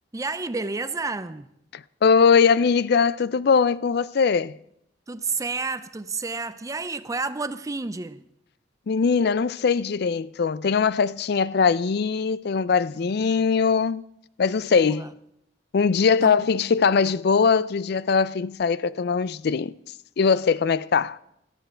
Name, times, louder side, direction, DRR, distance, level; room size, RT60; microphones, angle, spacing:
voice 1, 0.1-1.5 5.1-8.2 14.7-15.1 16.2-16.4, right 3 dB, 20° right, 0.5 m, -30 dB
voice 2, 1.7-4.6 8.9-14.0 14.4-15.1 15.7-19.7 20.2-21.2, left 5 dB, 60° left, 0.4 m, -21 dB
17.0 x 13.0 x 4.5 m
head